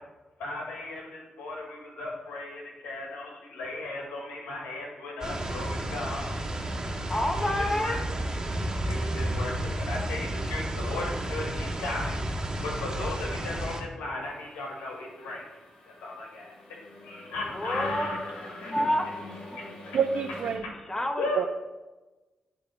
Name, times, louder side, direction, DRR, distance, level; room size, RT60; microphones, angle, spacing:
voice 1, 0.4-6.3 7.0-7.2 7.6-7.9 8.8-16.8 17.0-18.7 21.1-21.4, left 2 dB, 90° left, -1 dB, 1.8 m, -36 dB
sound 1, 5.2-13.8, right 1 dB, 30° right, 1.8 m, -32 dB
voice 2, 7.1-8.0 17.5-18.2 18.5-19.8 20.9-21.4, left 1 dB, 20° left, 4 dB, 1.3 m, -29 dB
sound 2, 14.2-20.6, left 2 dB, 65° left, 2.1 m, -44 dB
voice 3, 19.9-20.6 21.3-21.5, right 7 dB, 70° right, 7 dB, 0.4 m, -27 dB
10.0 x 3.5 x 5.6 m, 1.1 s
supercardioid pair, 50°, 2 cm